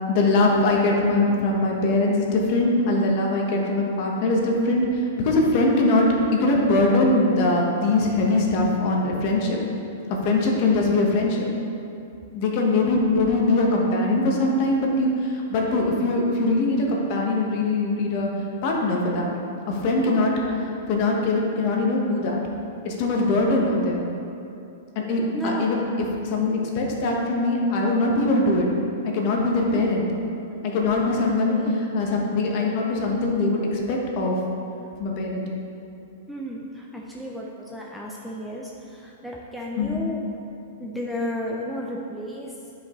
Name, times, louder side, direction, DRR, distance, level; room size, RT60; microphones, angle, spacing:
voice 1, 0.1-9.6 10.2-11.4 12.3-18.3 18.6-19.3 19.7-20.3 20.9-22.4 22.8-24.1 24.9-25.8 26.2-28.7 29.0-30.1 30.6-34.4 35.0-35.4 39.8-40.0, left 2 dB, 40° left, -1 dB, 1.0 m, -22 dB
voice 2, 25.3-25.7 29.7-29.9 30.9-31.1 31.4-31.7 36.3-40.2 40.8-42.5, left 1 dB, ahead, -3 dB, 0.4 m, -33 dB
9.2 x 5.2 x 3.0 m, 2.7 s
supercardioid pair, 160°, 0 cm